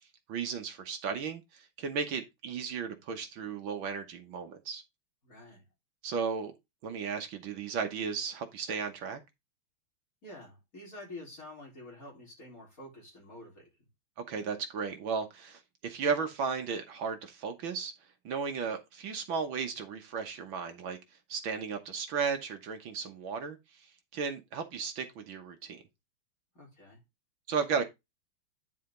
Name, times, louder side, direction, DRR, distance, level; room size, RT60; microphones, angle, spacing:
voice 1, 0.3-4.8 6.0-6.6 6.8-9.2 14.3-17.9 18.3-21.0 21.3-25.8 27.5-27.9, right 6 dB, 65° right, 1.8 m, -35 dB
voice 2, 5.2-5.6 10.2-13.9 26.5-27.0, left 1 dB, 40° left, 4.3 m, -48 dB
9.5 x 5.0 x 3.7 m
omnidirectional pair, 2.4 m